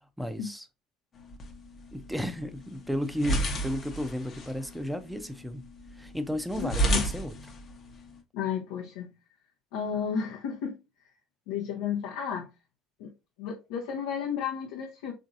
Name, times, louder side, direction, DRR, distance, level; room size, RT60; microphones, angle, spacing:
voice 1, 0.2-0.7 1.9-5.6 5.9-7.3, equal, ahead, 0.5 m, -33 dB
sound 1, 1.2-8.2, right 1 dB, 40° left, 0.8 m, -33 dB
voice 2, 6.6-7.0 8.3-9.1 9.7-10.8 11.5-12.5 13.0-13.1 13.4-15.1, left 7 dB, 70° left, 0.6 m, -32 dB
3.8 x 2.5 x 2.5 m
hypercardioid pair, 65°, 0 cm